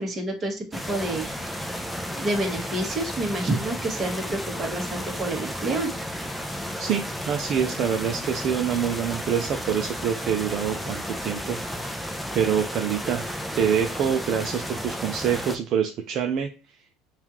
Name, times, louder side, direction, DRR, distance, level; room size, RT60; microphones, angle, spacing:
voice 1, 0.0-1.3 2.2-5.9, right 1 dB, 25° right, 1 dB, 1.3 m, -28 dB
sound 1, 0.7-15.6, equal, ahead, 0.5 m, -33 dB
voice 2, 6.8-16.5, right 8 dB, 50° right, 3 dB, 0.5 m, -26 dB
5.4 x 2.4 x 3.0 m, 0.32 s
supercardioid pair, 125°, 0 cm